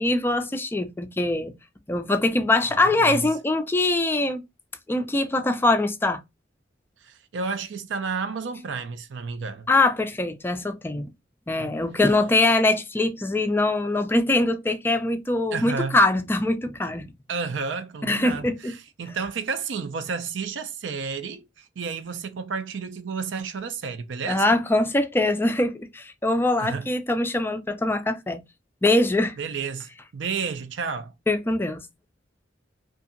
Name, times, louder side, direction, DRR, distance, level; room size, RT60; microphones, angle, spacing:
voice 1, 0.0-1.5 1.9-4.4 4.9-6.2 9.7-11.1 11.5-17.1 18.0-18.7 24.3-28.4 28.8-29.3 31.3-31.8, left 2 dB, 10° left, 0.3 m, -23 dB
voice 2, 2.8-3.3 7.0-9.7 11.6-11.8 15.5-16.0 17.3-24.4 26.6-26.9 29.4-31.1, right 5 dB, 75° right, 0.5 m, -31 dB
2.7 x 2.5 x 2.5 m
head